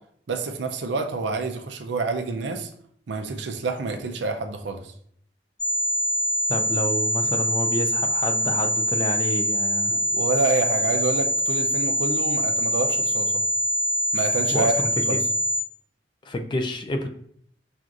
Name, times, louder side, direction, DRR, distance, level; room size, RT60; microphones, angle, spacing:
voice 1, 0.3-2.7 3.1-4.9 9.9-13.4 14.1-15.2, right 3 dB, 80° right, 6 dB, 0.5 m, -28 dB
sound 1, 5.6-15.6, equal, 5° left, 1.3 m, -24 dB
voice 2, 6.5-10.0 14.5-14.7 15.1-15.2 16.3-17.1, left 1 dB, 25° left, 5 dB, 0.3 m, -28 dB
5.9 x 2.5 x 2.4 m, 0.65 s
head